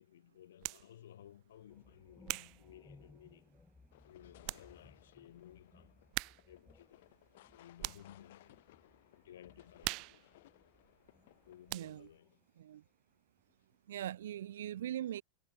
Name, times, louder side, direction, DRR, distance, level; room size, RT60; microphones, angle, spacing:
voice 1, 0.0-3.5 4.0-7.2 7.5-8.6 9.1-10.2 11.4-12.5, left 11 dB, 85° left, 3.2 m, -58 dB
sound 1, 0.6-0.9 1.6-3.5 4.1-4.2 4.4-4.7 5.0-5.1 6.1-6.6 6.9-8.2 8.7-9.0 9.2-11.4 11.7-12.2, right 26 dB, 35° right, 0.7 m, -43 dB
sound 2, 1.7-12.5 12.8-14.0, left 3 dB, 5° left, 0.9 m, -65 dB
sound 3, 3.9-12.0, left 16 dB, 55° left, 1.7 m, -63 dB
voice 2, 11.7-12.1 12.6-12.8 13.9-15.2, right 11 dB, 80° right, 0.4 m, -41 dB
supercardioid pair, 170°, 0 cm